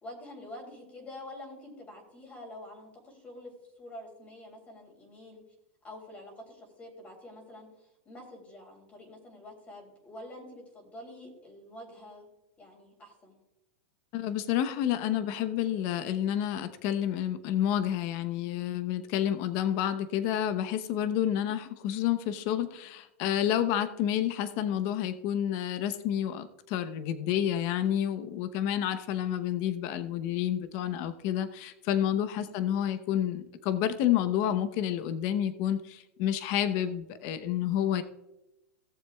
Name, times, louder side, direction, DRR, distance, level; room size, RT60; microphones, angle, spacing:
voice 1, 0.0-3.5 3.8-5.4 5.8-12.3 12.6-13.4 30.8-31.0 32.4-32.7, left 1 dB, 20° left, 0 dB, 3.2 m, -47 dB
voice 2, 14.1-38.0, left 10 dB, 45° left, 11 dB, 0.9 m, -29 dB
17.0 x 7.3 x 2.3 m, 0.92 s
supercardioid pair, 140°, 7 cm